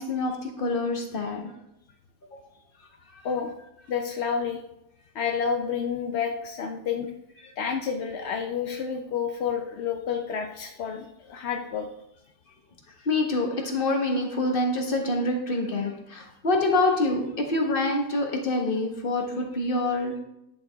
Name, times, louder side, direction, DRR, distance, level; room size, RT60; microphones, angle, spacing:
voice 1, 0.0-1.5 2.3-2.4 3.1-3.2 7.4-7.5 13.0-20.2, left 2 dB, 35° left, 2 dB, 1.4 m, -26 dB
voice 2, 3.9-4.6 5.1-7.1 7.6-11.9, left 6 dB, 60° left, 3 dB, 0.7 m, -29 dB
10.5 x 6.6 x 3.5 m, 0.81 s
omnidirectional pair, 1.8 m